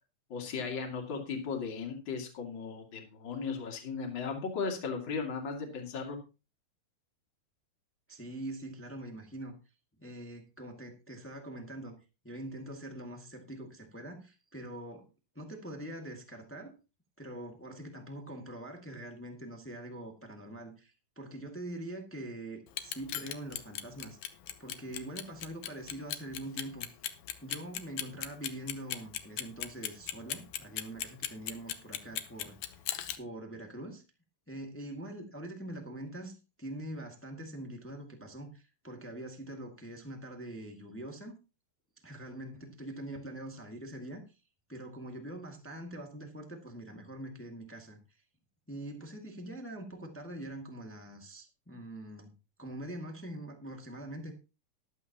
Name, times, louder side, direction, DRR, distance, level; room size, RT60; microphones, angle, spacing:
voice 1, 0.3-6.2, left 5 dB, 35° left, 2 dB, 2.8 m, -36 dB
voice 2, 8.1-9.6 10.0-11.9 12.2-15.1 15.3-16.7 17.2-24.2 24.6-26.9 27.4-32.9 33.1-34.0 34.5-41.3 42.0-44.2 44.7-48.0 48.7-52.3 52.6-54.3, right 1 dB, 10° left, 3 dB, 0.5 m, -43 dB
Clock, 22.7-33.2, left 12 dB, 70° left, 2.1 m, -37 dB
13.5 x 12.0 x 2.9 m, 0.30 s
omnidirectional pair, 4.1 m